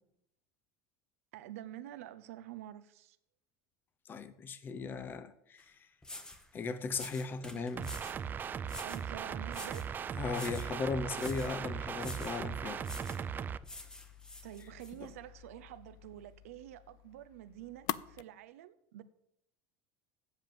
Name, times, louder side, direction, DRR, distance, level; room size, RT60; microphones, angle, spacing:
voice 1, 1.3-3.2 7.4-7.6 8.8-9.9 14.4-19.0, right 13 dB, 90° right, 0.6 m, -48 dB
voice 2, 4.0-5.8 6.5-7.9 10.2-12.8, left 4 dB, 25° left, 0.7 m, -37 dB
sound 1, 5.6-5.7 6.0-6.5 6.9-8.2 8.7-9.1 9.5-9.9 10.3-10.7 11.1-11.5 12.0-12.4 12.8-13.2 13.6-14.9, left 1 dB, 10° left, 1.0 m, -48 dB
sound 2, 7.8-13.6, right 7 dB, 25° right, 0.4 m, -38 dB
sound 3, 10.4-18.2, left 15 dB, 55° left, 0.4 m, -47 dB
8.0 x 7.4 x 7.5 m
supercardioid pair, 120°, 7 cm